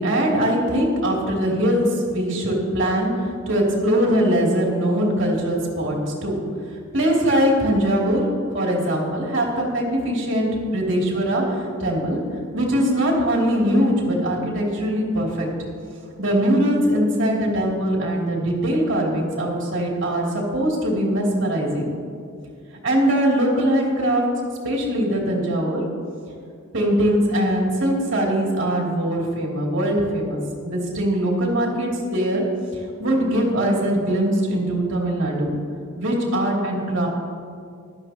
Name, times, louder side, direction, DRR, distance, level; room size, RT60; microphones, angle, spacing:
voice 1, 0.0-6.0 6.2-6.4 6.9-8.3 8.5-12.2 12.5-15.5 16.2-21.9 22.8-24.2 24.6-25.8 26.7-32.4 33.0-35.6 36.0-37.1, equal, 60° right, -3 dB, 2.9 m, -21 dB
15.5 x 12.0 x 3.0 m, 2.3 s
head